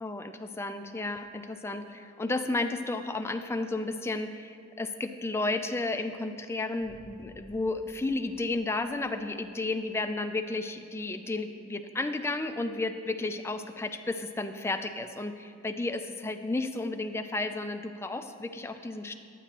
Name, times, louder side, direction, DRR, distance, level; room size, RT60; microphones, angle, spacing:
voice 1, 0.0-19.1, left 2 dB, 10° left, 7 dB, 0.3 m, -33 dB
sound 1, 6.8-9.7, equal, 50° right, 1.2 m, -56 dB
11.5 x 9.0 x 2.9 m, 2.4 s
head